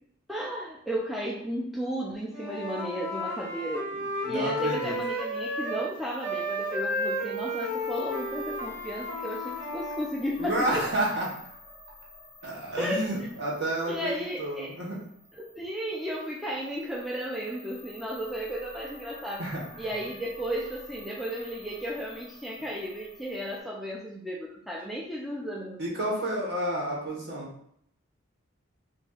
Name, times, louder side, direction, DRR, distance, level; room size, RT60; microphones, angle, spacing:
voice 1, 0.3-3.9 4.3-10.7 12.8-13.0 13.9-14.7 15.4-19.4 19.8-26.0, equal, ahead, -4 dB, 0.3 m, -34 dB
Wind instrument woodwind instrument, 2.3-5.9 6.2-10.1, left 1 dB, 90° right, 1.3 m, -32 dB
voice 2, 4.2-4.9 10.4-11.4 12.4-15.0 19.4-19.6 25.8-27.5, right 1 dB, 55° right, -5 dB, 1.1 m, -30 dB
sound 1, 4.6-23.6, left 2 dB, 15° left, 1.2 m, -51 dB
4.0 x 2.6 x 2.3 m, 0.69 s
head